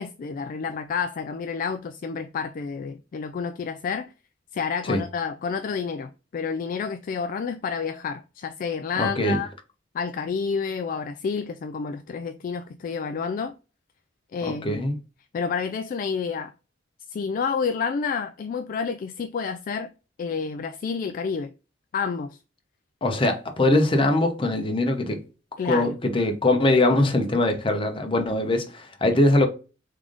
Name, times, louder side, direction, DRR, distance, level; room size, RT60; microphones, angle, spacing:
voice 1, 0.0-4.1 4.5-9.5 9.9-13.5 14.3-14.8 15.3-16.5 17.1-19.9 20.2-21.5 21.9-22.4 25.6-26.0, left 5 dB, 45° left, 0.3 m, -29 dB
voice 2, 9.0-9.4 14.5-15.0 23.0-25.2 25.6-29.5, left 2 dB, 30° left, 0.8 m, -22 dB
3.7 x 3.5 x 3.6 m
head